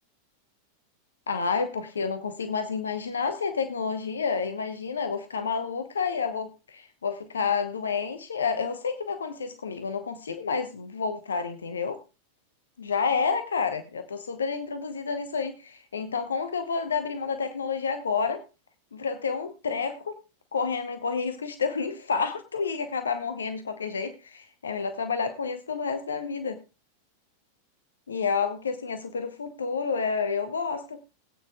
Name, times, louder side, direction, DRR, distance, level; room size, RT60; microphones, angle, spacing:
voice 1, 1.3-12.0 12.8-18.4 18.9-20.2 20.5-26.6 28.1-31.0, left 5 dB, 70° left, 8 dB, 0.9 m, -29 dB
20.0 x 9.1 x 2.3 m, 0.28 s
figure-of-eight pair, 90°, 0 cm